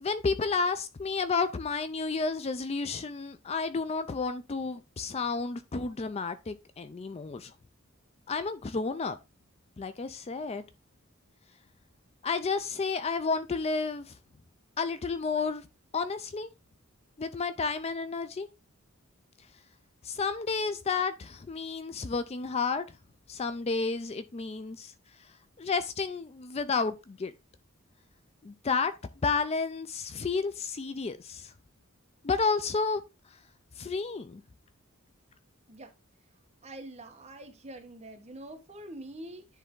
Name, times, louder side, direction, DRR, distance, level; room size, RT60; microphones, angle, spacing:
voice 1, 0.0-7.5 8.3-9.2 9.8-10.6 12.2-14.1 14.8-15.7 15.9-16.5 17.2-18.5 20.0-22.8 23.3-24.9 25.6-27.3 28.4-28.9 29.2-31.5 32.2-33.0 33.8-34.4, left 4 dB, 30° left, 0.4 m, -31 dB
voice 2, 36.6-39.5, right 1 dB, 30° right, 1.2 m, -45 dB
10.0 x 3.4 x 3.7 m
head